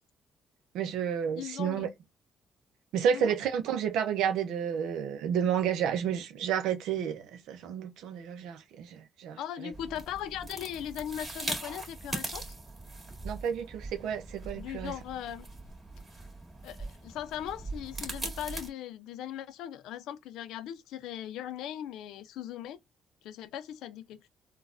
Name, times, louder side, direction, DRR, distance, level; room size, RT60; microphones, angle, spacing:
voice 1, 0.7-1.9 2.9-9.4 13.2-14.9, right 8 dB, 90° right, 0.5 m, -31 dB
voice 2, 1.4-1.9 3.1-3.4 9.4-12.4 14.5-15.5 16.6-22.8 23.2-24.3, left 10 dB, 90° left, 0.5 m, -39 dB
sound 1, 9.7-18.7, right 2 dB, 25° right, 1.9 m, -41 dB
3.9 x 2.3 x 2.4 m
cardioid pair, 100°, 0 cm